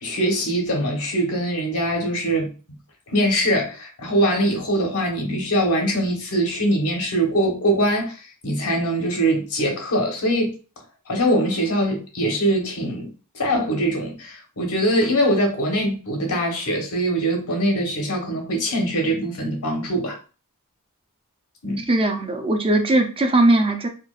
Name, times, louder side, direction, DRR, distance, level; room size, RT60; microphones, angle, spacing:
voice 1, 0.0-2.5 3.1-10.5 11.1-20.2 21.6-21.9, right 1 dB, 85° left, 1.2 m, -22 dB
voice 2, 21.9-23.9, right 2 dB, 25° right, 0.5 m, -19 dB
4.3 x 2.3 x 2.4 m
head